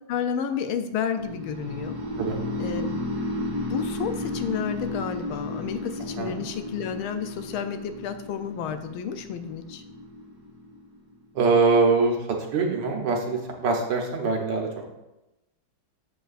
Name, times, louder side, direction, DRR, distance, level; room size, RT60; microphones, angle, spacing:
voice 1, 0.1-2.0 2.6-3.0 3.7-9.8, left 7 dB, 85° left, 9 dB, 1.5 m, -31 dB
sound 1, 1.2-11.1, left 1 dB, 35° right, 0.6 m, -33 dB
voice 2, 11.3-12.2 12.5-14.9, right 4 dB, 60° right, 1 dB, 1.5 m, -23 dB
7.8 x 7.8 x 2.5 m, 0.96 s
omnidirectional pair, 2.3 m